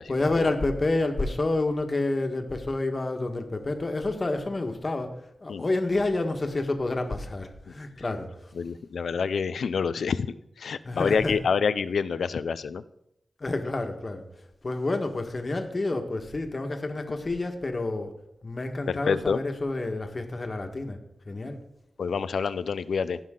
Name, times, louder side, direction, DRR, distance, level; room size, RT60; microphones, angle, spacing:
voice 1, 0.1-8.5 10.8-11.3 13.4-14.2 14.6-18.1 18.4-21.0 21.2-21.6, left 2 dB, 45° left, 5 dB, 1.5 m, -29 dB
voice 2, 8.6-10.3 10.6-12.8 18.9-19.4 22.0-23.2, left 6 dB, 90° left, 16 dB, 0.4 m, -27 dB
16.5 x 5.6 x 3.8 m, 0.81 s
cardioid pair, 55°, 0 cm